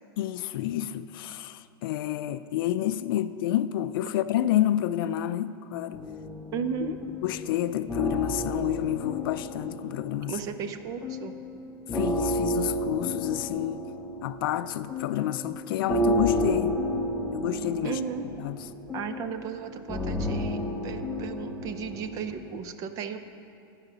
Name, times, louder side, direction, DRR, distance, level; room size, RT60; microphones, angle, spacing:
voice 1, 0.2-6.0 7.2-10.3 11.9-13.9 14.2-16.8 17.3-18.0 18.4-18.6, left 12 dB, 60° left, 0.4 m, -29 dB
sound 1, 5.9-10.6 11.0-22.6, equal, 10° left, 0.7 m, -32 dB
voice 2, 6.5-7.0 10.3-11.4 17.8-18.3 18.9-23.2, right 7 dB, 25° right, 0.5 m, -35 dB
14.5 x 4.9 x 6.7 m
supercardioid pair, 160°, 13 cm